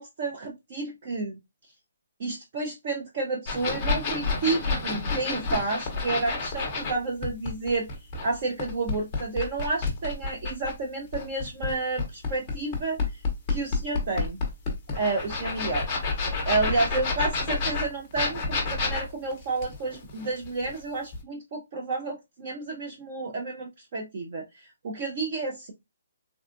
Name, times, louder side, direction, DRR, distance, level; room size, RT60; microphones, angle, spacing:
voice 1, 0.0-1.4 2.2-7.9 8.2-13.0 13.5-14.4 15.0-15.9 16.5-25.7, right 3 dB, 25° right, 1 dB, 0.4 m, -30 dB
sound 1, 3.5-6.9 7.2-10.7 11.1-20.8 21.1-21.2, left 3 dB, 10° left, 0.7 m, -29 dB
3.5 x 2.2 x 2.4 m, 0.20 s
hypercardioid pair, 180°, 0 cm